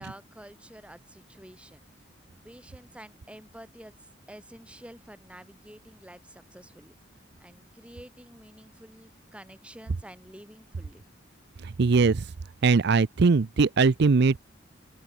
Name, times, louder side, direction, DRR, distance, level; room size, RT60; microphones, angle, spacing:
voice 1, 0.0-1.8 2.2-3.9 4.3-6.9 7.4-11.0, right 1 dB, 5° right, 4.9 m, -49 dB
voice 2, 11.6-12.3 12.6-14.4, right 4 dB, 60° right, 0.5 m, -21 dB
open air
head